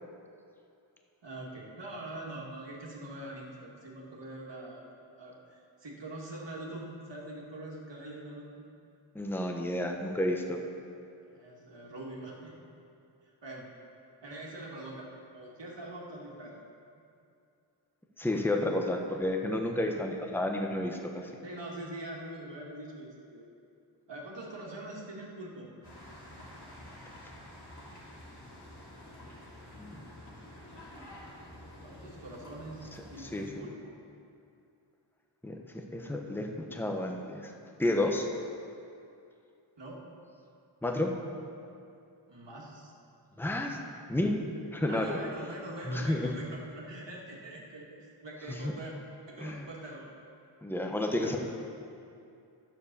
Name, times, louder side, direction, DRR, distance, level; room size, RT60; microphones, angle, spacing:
voice 1, 1.2-4.9 5.2-8.7 11.3-12.5 13.4-13.7 14.2-15.1 15.3-16.5 18.3-18.7 21.4-23.5 24.1-25.7 31.8-33.9 39.8-40.1 42.3-42.9 44.9-48.9 49.3-50.1 51.1-51.4, right 1 dB, 65° right, -3 dB, 2.1 m, -43 dB
voice 2, 9.1-10.6 18.2-21.3 29.8-30.1 33.2-33.4 35.4-37.5 37.8-38.3 40.8-41.1 43.4-43.8 44.1-44.4 44.7-45.2 45.9-46.3 49.4-49.6 50.6-51.4, left 1 dB, 5° left, 2 dB, 1.0 m, -31 dB
sound 1, 25.8-33.5, left 1 dB, 55° left, 3.0 m, -49 dB
10.0 x 7.2 x 6.7 m, 2.5 s
wide cardioid pair, 70°, 46 cm